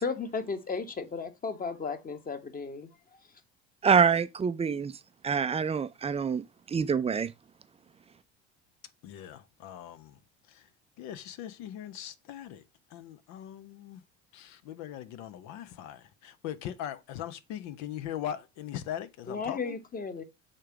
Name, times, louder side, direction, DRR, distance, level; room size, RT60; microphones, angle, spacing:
voice 1, 0.0-2.9 19.3-20.2, left 4 dB, 25° left, 1.3 m, -34 dB
voice 2, 3.8-4.9 5.2-6.4 6.7-7.3, right 6 dB, 20° right, 0.5 m, -25 dB
voice 3, 9.0-10.2 10.5-10.6 11.0-12.6 12.9-14.0 14.3-19.8, left 11 dB, 55° left, 0.8 m, -40 dB
6.6 x 3.7 x 4.7 m
hypercardioid pair, 65°, 33 cm